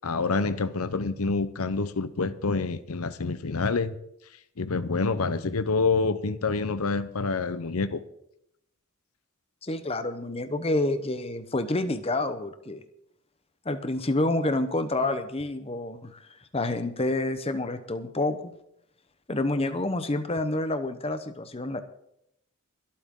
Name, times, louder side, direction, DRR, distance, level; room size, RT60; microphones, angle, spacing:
voice 1, 0.0-3.9 4.6-8.0, left 4 dB, 80° left, 14 dB, 0.8 m, -27 dB
voice 2, 9.6-12.8 13.6-16.3 16.5-18.5 19.3-21.8, left 2 dB, 25° left, 10 dB, 0.9 m, -28 dB
23.5 x 8.7 x 3.7 m, 0.77 s
head